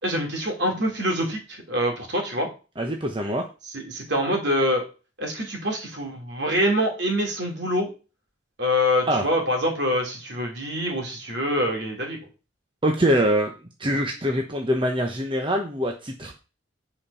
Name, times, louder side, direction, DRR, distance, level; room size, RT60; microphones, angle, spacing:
voice 1, 0.0-2.5 3.7-4.8 5.2-7.9 8.6-12.2, equal, 55° right, 1 dB, 3.2 m, -25 dB
voice 2, 2.8-3.4 9.1-9.3 12.8-13.5 13.8-16.4, equal, 25° right, 3 dB, 1.0 m, -24 dB
9.7 x 5.3 x 5.6 m, 0.33 s
head